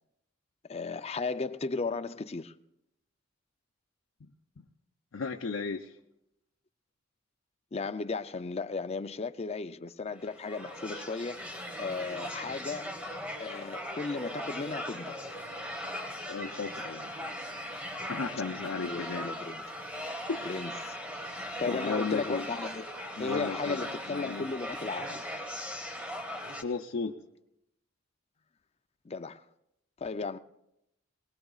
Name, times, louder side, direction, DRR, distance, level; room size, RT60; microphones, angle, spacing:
voice 1, 0.7-2.5 7.7-11.4 11.8-13.0 13.4-15.2 18.8-19.6 20.4-21.0 21.6-22.8 23.2-25.2 29.1-29.4 30.0-30.4, left 4 dB, 30° left, 0.5 m, -35 dB
voice 2, 5.1-5.9 16.3-17.2 18.1-19.3 20.3-20.6 21.7-22.5 23.2-24.5 26.6-27.1, left 4 dB, 75° left, 0.6 m, -35 dB
sound 1, 10.1-26.6, equal, 5° right, 1.4 m, -39 dB
22.5 x 20.0 x 2.4 m
head